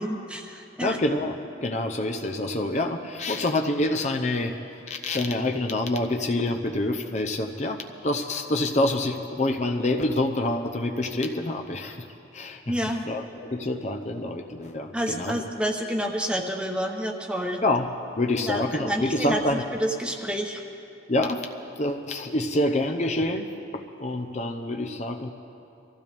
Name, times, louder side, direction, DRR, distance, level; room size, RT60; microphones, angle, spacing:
voice 1, 0.0-1.0 12.7-13.1 14.9-17.6 18.4-20.6, equal, 5° right, 2 dB, 1.0 m, -29 dB
voice 2, 0.8-1.3 1.6-4.5 4.9-12.0 12.3-12.7 13.1-15.4 17.6-17.9 18.2-19.6 21.1-21.5 21.8-25.3, left 1 dB, 40° left, 3 dB, 0.7 m, -27 dB
24.5 x 15.5 x 3.5 m, 2.7 s
head